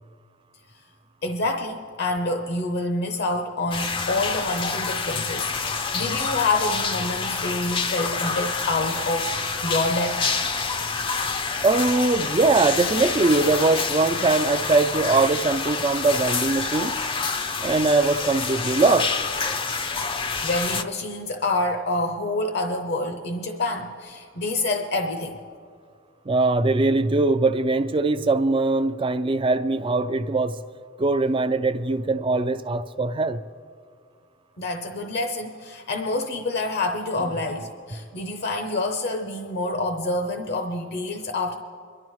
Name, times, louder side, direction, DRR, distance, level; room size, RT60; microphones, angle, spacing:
voice 1, 1.2-9.3 9.6-10.3 20.0-20.1 20.4-25.4 34.6-41.6, left 2 dB, 55° left, 0.8 m, -27 dB
sound 1, 3.7-20.8, left 4 dB, 25° left, 0.5 m, -27 dB
voice 2, 11.6-17.0 17.6-19.1 26.3-30.5 31.0-33.4, right 3 dB, 25° right, 0.4 m, -21 dB
24.5 x 12.0 x 3.1 m
head